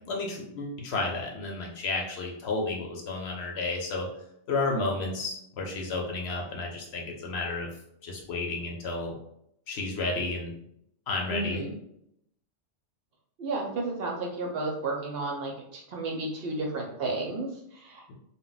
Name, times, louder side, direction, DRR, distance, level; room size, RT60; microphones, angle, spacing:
voice 1, 0.1-4.1 4.5-7.7 8.0-9.1 9.7-10.5 11.1-11.6, left 3 dB, 65° left, 0 dB, 0.8 m, -32 dB
voice 2, 11.3-11.7 13.4-18.1, right 2 dB, 60° right, -1 dB, 0.7 m, -32 dB
2.2 x 2.0 x 3.8 m, 0.75 s
omnidirectional pair, 1.2 m